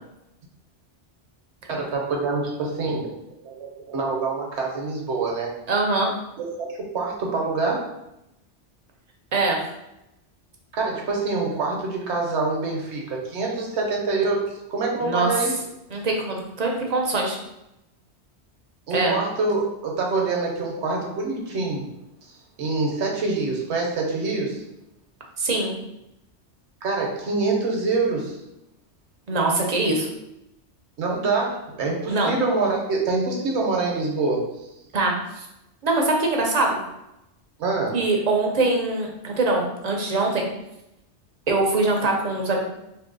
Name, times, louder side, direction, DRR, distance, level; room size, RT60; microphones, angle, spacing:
voice 1, 1.7-3.1 3.4-5.5 6.4-7.9 10.7-15.6 18.9-21.9 22.6-24.6 26.8-28.3 31.0-34.4 37.6-38.0, right 3 dB, 75° right, 0 dB, 1.1 m, -25 dB
voice 2, 5.7-6.1 9.3-9.6 15.0-15.3 15.9-17.4 18.9-19.2 25.4-25.7 29.3-30.1 32.1-32.3 34.9-35.4 35.8-36.8 37.9-40.5 41.5-42.6, right 2 dB, 45° right, 0 dB, 0.6 m, -23 dB
2.9 x 2.7 x 3.8 m, 0.88 s
omnidirectional pair, 1.2 m